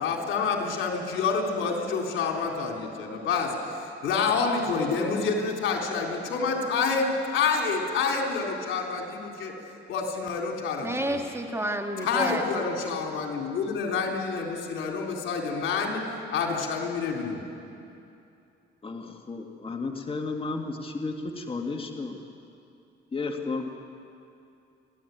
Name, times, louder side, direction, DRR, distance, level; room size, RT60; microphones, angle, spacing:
voice 1, 0.0-3.5 4.0-9.5 9.9-11.2 12.0-17.4, left 5 dB, 80° left, 1 dB, 3.7 m, -28 dB
voice 2, 10.8-12.4, right 1 dB, 15° right, 3 dB, 2.1 m, -30 dB
voice 3, 18.8-22.2 23.1-23.7, left 3 dB, 30° left, 2 dB, 2.0 m, -33 dB
29.5 x 12.0 x 9.4 m, 2.6 s
cardioid pair, 90°, 20 cm